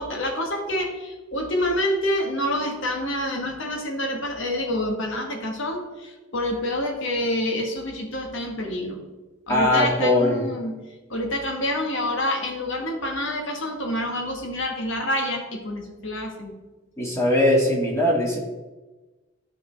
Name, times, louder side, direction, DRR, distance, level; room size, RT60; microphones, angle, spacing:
voice 1, 0.0-9.0 9.5-10.8 11.1-16.5, left 1 dB, 65° left, 2 dB, 1.4 m, -27 dB
voice 2, 9.5-10.5 17.0-18.4, left 1 dB, 15° left, -4 dB, 1.9 m, -20 dB
11.5 x 4.9 x 3.3 m, 1.2 s
head